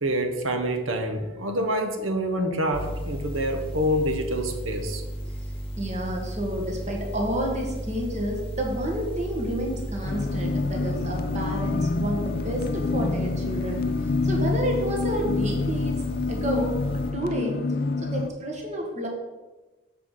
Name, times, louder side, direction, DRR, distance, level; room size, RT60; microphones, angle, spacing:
voice 1, 0.0-5.0, equal, 85° right, 5 dB, 1.1 m, -27 dB
sound 1, 2.7-17.1, equal, 30° left, 1.0 m, -34 dB
voice 2, 5.8-13.9 14.2-16.0 16.3-17.6 18.0-19.1, equal, 35° right, 0 dB, 1.5 m, -30 dB
sound 2, 10.0-18.3, left 3 dB, 50° left, 0.4 m, -27 dB
7.4 x 4.8 x 5.5 m, 1.2 s
head